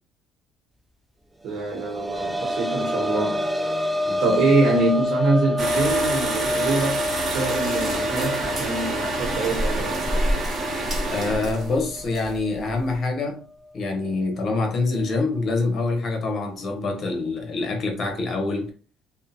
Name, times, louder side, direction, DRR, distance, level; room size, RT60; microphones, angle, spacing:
voice 1, 1.4-3.4 4.2-7.0 7.3-10.2, right 3 dB, 60° right, 1.0 m, -24 dB
sound 1, 1.5-13.0 13.3-13.4 15.0-15.1, left 1 dB, 5° right, 0.3 m, -28 dB
voice 2, 4.0-4.4 11.1-13.4 13.7-18.7, left 3 dB, 45° left, 0.9 m, -25 dB
sound 2, 5.6-12.9, right 2 dB, 30° right, 0.9 m, -27 dB
2.6 x 2.1 x 2.7 m
supercardioid pair, 90°, 0 cm